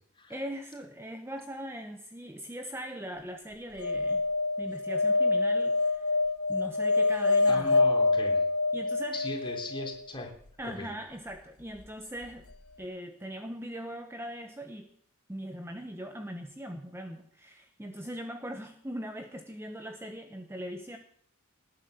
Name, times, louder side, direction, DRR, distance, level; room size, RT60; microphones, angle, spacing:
voice 1, 0.3-4.2 4.6-6.2 6.5-7.8 8.7-9.2 10.6-12.5 12.8-14.9 15.3-21.0, equal, 10° right, 6 dB, 1.0 m, -40 dB
sound 1, 3.8-10.0 12.2-12.3 12.5-12.6, left 3 dB, 65° left, 0.9 m, -26 dB
voice 2, 7.5-8.4 9.1-10.3 10.6-10.9, left 2 dB, 20° left, 1 dB, 3.8 m, -38 dB
19.0 x 9.8 x 6.7 m, 0.64 s
head